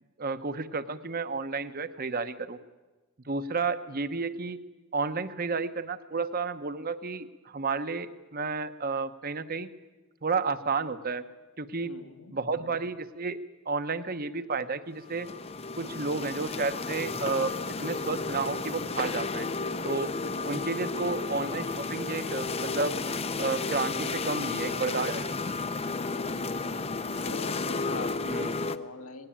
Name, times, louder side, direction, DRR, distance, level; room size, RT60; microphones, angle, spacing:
voice 1, 0.2-2.6 3.3-4.6 4.9-9.7 10.2-11.2 11.6-12.0 12.3-13.4 13.7-15.3 15.8-19.5 19.8-20.1 20.4-23.0 23.4-25.3 28.2-28.5, right 4 dB, 40° right, 11 dB, 0.9 m, -31 dB
voice 2, 11.8-12.3 20.2-20.6 26.1-26.7 27.2-29.3, left 3 dB, 75° left, 6 dB, 1.8 m, -43 dB
sound 1, 15.0-28.8, left 3 dB, 30° left, 0.6 m, -32 dB
19.0 x 17.5 x 8.7 m, 1.2 s
head